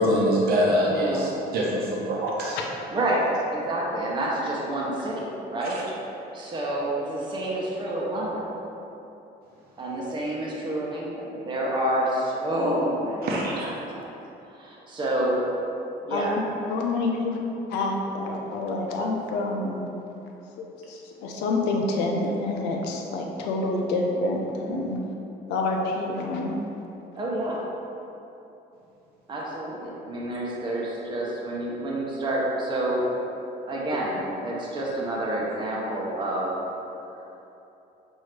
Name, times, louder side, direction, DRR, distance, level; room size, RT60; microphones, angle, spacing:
voice 1, 0.0-2.6 13.2-13.7, equal, 65° right, -4 dB, 0.9 m, -24 dB
voice 2, 0.8-1.3 2.9-3.2 3.5-5.1 5.5-5.8 6.3-8.4 9.8-14.0 14.5-15.4 16.0-16.4 24.5-24.8 27.2-27.6 29.3-33.0 33.7-36.6, right 1 dB, 30° right, -5 dB, 0.8 m, -28 dB
voice 3, 16.7-17.4 17.7-19.8 20.6-25.0 25.5-26.6, left 2 dB, 90° left, 0 dB, 0.6 m, -28 dB
5.9 x 2.7 x 3.2 m, 2.9 s
cardioid pair, 110°, 17 cm